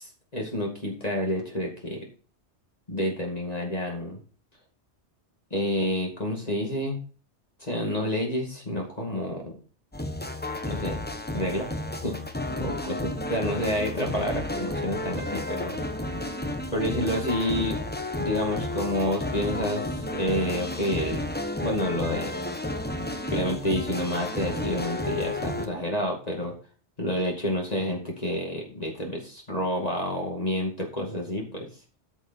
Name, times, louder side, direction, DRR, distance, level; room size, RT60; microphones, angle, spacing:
voice 1, 0.0-2.0 2.9-4.2 5.5-7.0 7.6-9.6 10.6-11.0 11.3-11.7 12.0-12.2 12.6-15.8 16.7-17.7 18.2-21.3 21.6-22.3 23.3-26.5 27.0-31.7, equal, 35° left, 0 dB, 2.6 m, -29 dB
sound 1, 9.9-25.7, left 1 dB, 10° left, 1.1 m, -32 dB
13.0 x 6.3 x 4.6 m, 0.37 s
omnidirectional pair, 1.2 m